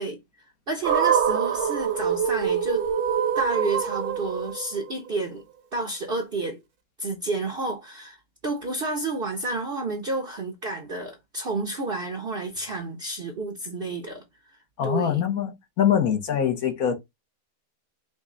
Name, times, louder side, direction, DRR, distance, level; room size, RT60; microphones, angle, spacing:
voice 1, 0.0-2.9 3.3-5.5 5.7-6.6 7.0-8.2 8.4-14.2 14.8-15.2, right 2 dB, 45° right, 0.8 m, -30 dB
sound 1, 0.8-5.1, right 8 dB, 65° right, 1.4 m, -25 dB
voice 2, 14.8-16.9, left 9 dB, 60° left, 1.3 m, -23 dB
5.2 x 2.3 x 3.7 m
omnidirectional pair, 1.8 m